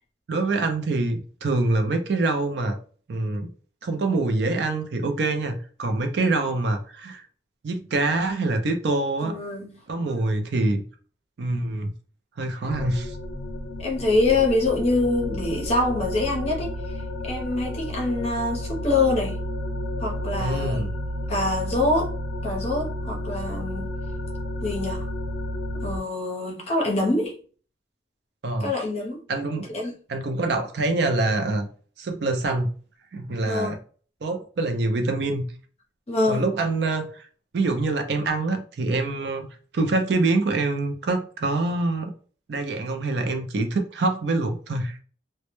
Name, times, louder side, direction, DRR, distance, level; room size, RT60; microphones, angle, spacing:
voice 1, 0.3-2.8 3.1-3.5 3.8-7.2 7.6-9.3 9.9-10.8 11.4-11.9 12.4-13.2 20.4-20.9 28.4-28.7 29.3-29.7 30.1-31.7 32.0-32.7 33.1-33.8 34.2-35.4 36.3-37.3 37.5-39.5 39.7-42.1 42.5-45.0, right 2 dB, 65° right, 0.4 m, -25 dB
voice 2, 9.2-9.8 13.8-16.8 17.2-19.4 20.0-20.8 21.3-22.1 22.4-23.9 24.6-25.1 25.8-27.4 28.6-29.2 29.7-29.9 33.5-33.8 36.1-36.5, left 2 dB, 35° left, 0.6 m, -25 dB
sound 1, 12.7-26.0, left 1 dB, 90° left, 0.4 m, -31 dB
2.1 x 2.1 x 2.9 m
head